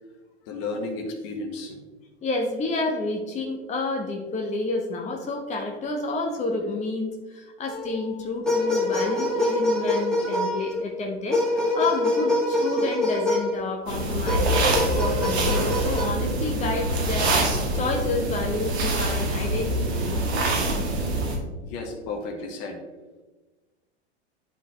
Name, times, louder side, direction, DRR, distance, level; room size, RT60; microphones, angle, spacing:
voice 1, 0.5-1.8 21.6-22.8, left 3 dB, 55° left, 4 dB, 1.4 m, -33 dB
voice 2, 2.2-17.4 17.7-20.2, left 3 dB, 20° left, 2 dB, 1.0 m, -30 dB
sound 1, 7.7-8.0 8.5-10.8 11.3-13.6 14.3-16.1, left 1 dB, ahead, 1.9 m, -25 dB
sound 2, 13.9-21.4, right 1 dB, 70° right, 1.6 m, -25 dB
11.0 x 4.0 x 3.1 m, 1.3 s
figure-of-eight pair, 90°, 34 cm